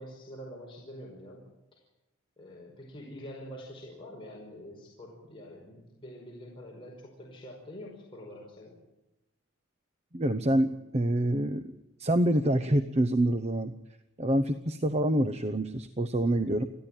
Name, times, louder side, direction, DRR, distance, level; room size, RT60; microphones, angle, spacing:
voice 1, 0.0-1.5 1.7-1.8 2.4-8.8, equal, 25° left, -3 dB, 5.3 m, -46 dB
voice 2, 10.1-11.7 12.0-13.7 14.2-16.6, right 1 dB, 30° right, 10 dB, 0.8 m, -26 dB
30.0 x 11.5 x 9.2 m, 0.91 s
head